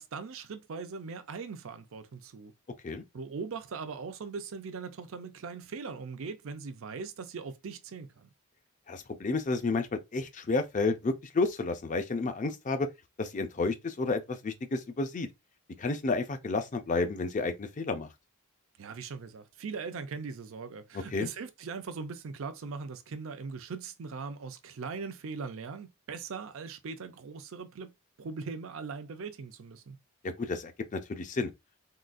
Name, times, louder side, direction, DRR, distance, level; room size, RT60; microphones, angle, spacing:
voice 1, 0.0-2.5 3.1-8.3 18.8-27.9 28.2-30.0, right 5 dB, 65° right, 0.5 m, -40 dB
voice 2, 8.9-12.9 13.2-15.3 15.8-18.1 21.1-21.3 30.2-31.5, left 3 dB, 35° left, 0.4 m, -31 dB
3.7 x 2.3 x 2.4 m
head